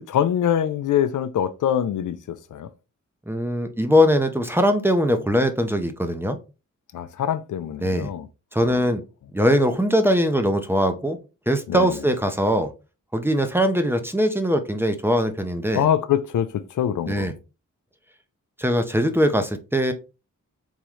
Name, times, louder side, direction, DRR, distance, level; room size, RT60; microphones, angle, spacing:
voice 1, 0.1-2.7 6.9-8.3 11.7-11.9 15.7-17.3, left 9 dB, 80° left, 0.5 m, -24 dB
voice 2, 3.3-6.4 7.8-8.1 8.5-9.0 9.3-11.2 11.5-12.7 13.1-15.8 17.1-17.3 18.6-19.9, equal, 5° right, 0.6 m, -21 dB
3.6 x 3.0 x 3.0 m
wide cardioid pair, 90°, 31 cm